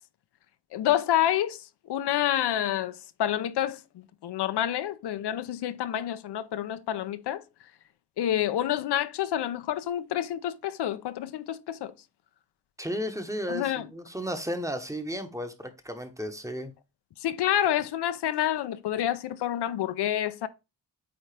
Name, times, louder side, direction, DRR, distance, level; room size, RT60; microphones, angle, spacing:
voice 1, 0.7-3.8 4.2-7.4 8.2-11.9 13.5-13.9 17.2-20.5, left 11 dB, 75° left, 0.6 m, -28 dB
voice 2, 12.8-16.7, equal, 10° right, 0.9 m, -34 dB
8.8 x 3.7 x 3.3 m
cardioid pair, 115°, 40 cm